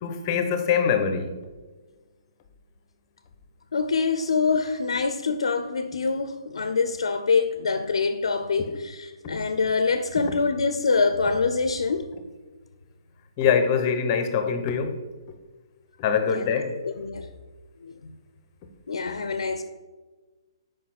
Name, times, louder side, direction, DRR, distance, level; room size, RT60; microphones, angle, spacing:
voice 1, 0.0-1.3 13.4-15.0 16.0-16.8, left 7 dB, 30° left, 0.9 m, -23 dB
voice 2, 3.7-12.1 16.2-16.5 16.8-17.3 17.8-18.1 18.9-19.6, left 4 dB, 80° left, 0.6 m, -25 dB
6.2 x 5.0 x 5.9 m
hypercardioid pair, 145°, 3 cm